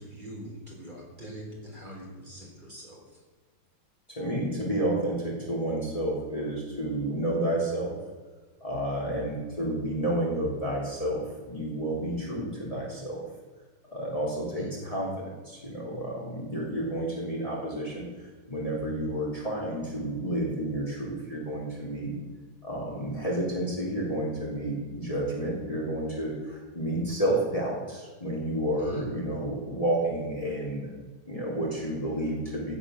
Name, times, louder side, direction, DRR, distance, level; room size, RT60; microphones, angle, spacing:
voice 1, 0.0-3.0 14.5-14.7 28.8-29.0, equal, 25° right, -3 dB, 4.4 m, -43 dB
voice 2, 4.1-7.9 8.6-13.2 13.9-18.1 18.5-22.1 22.6-30.9 31.3-32.7, right 1 dB, 15° left, -3 dB, 4.0 m, -30 dB
16.5 x 9.8 x 6.8 m, 1.4 s
omnidirectional pair, 2.0 m